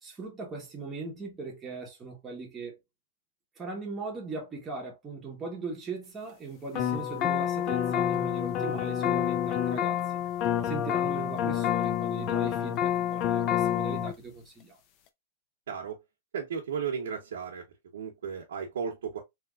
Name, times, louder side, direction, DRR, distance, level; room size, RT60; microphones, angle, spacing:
voice 1, 0.0-2.8 3.6-10.0 10.6-14.7, right 3 dB, 10° right, 1.1 m, -39 dB
sound 1, 6.7-14.1, left 10 dB, 30° left, 0.4 m, -28 dB
voice 2, 15.7-16.0 16.3-17.6 17.9-19.2, right 6 dB, 90° right, 0.8 m, -34 dB
3.3 x 2.9 x 2.3 m
supercardioid pair, 170°, 0 cm